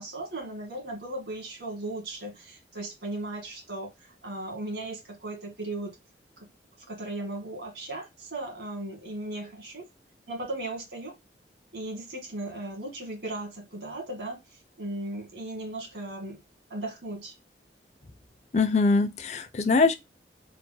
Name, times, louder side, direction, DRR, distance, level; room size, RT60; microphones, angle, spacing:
voice 1, 0.0-6.0 6.4-6.5 6.9-9.9 10.3-11.1 11.7-14.4 14.8-16.4 16.7-17.3, right 2 dB, 70° right, 1.7 m, -37 dB
voice 2, 18.5-20.0, left 3 dB, 40° left, 0.5 m, -22 dB
4.0 x 2.1 x 4.4 m
head